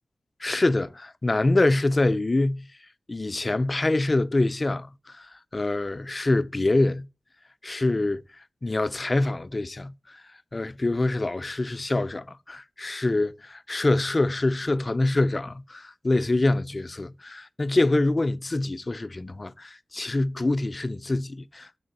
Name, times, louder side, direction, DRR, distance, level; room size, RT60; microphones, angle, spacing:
voice 1, 0.4-2.7 3.1-7.1 7.6-8.2 8.6-10.2 10.5-21.8, left 2 dB, 35° left, 0.3 m, -25 dB
6.7 x 3.9 x 3.9 m
wide cardioid pair, 80°, 0 cm